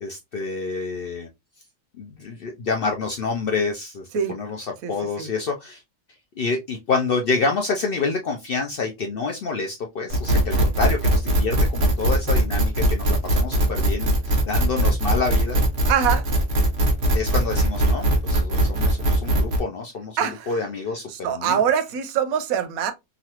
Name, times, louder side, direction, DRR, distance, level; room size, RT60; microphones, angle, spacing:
voice 1, 0.0-1.3 2.0-5.8 6.4-15.6 17.1-21.6, left 4 dB, 65° left, 0.5 m, -28 dB
sound 1, 10.1-19.6, right 1 dB, 55° right, 1.1 m, -20 dB
voice 2, 15.9-16.3 20.2-20.5 21.1-22.9, right 8 dB, 90° right, 1.0 m, -23 dB
3.1 x 2.4 x 2.8 m
omnidirectional pair, 1.4 m